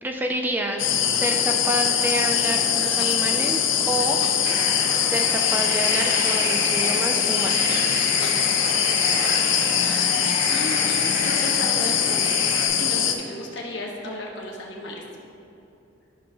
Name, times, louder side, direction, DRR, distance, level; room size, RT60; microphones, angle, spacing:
voice 1, 0.0-0.9 1.2-4.6 5.1-7.9, right 1 dB, 10° right, 2 dB, 0.4 m, -28 dB
sound 1, 0.8-13.1, left 8 dB, 80° left, 0.5 m, -22 dB
sound 2, 4.4-12.7, right 1 dB, 60° right, 1.7 m, -31 dB
voice 2, 9.6-10.1 10.5-12.1 12.8-15.0, left 1 dB, 65° left, -2 dB, 1.0 m, -34 dB
11.0 x 6.1 x 2.7 m, 2.8 s
head